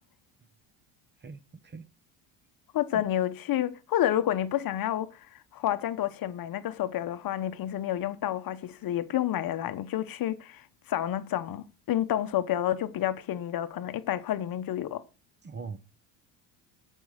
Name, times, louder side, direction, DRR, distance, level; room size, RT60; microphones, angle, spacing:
voice 1, 1.2-1.9 15.4-15.8, right 5 dB, 25° right, 1.0 m, -41 dB
voice 2, 2.7-5.3 5.5-15.0, left 12 dB, 50° left, 1.0 m, -29 dB
13.0 x 5.5 x 6.4 m
supercardioid pair, 85°, 46 cm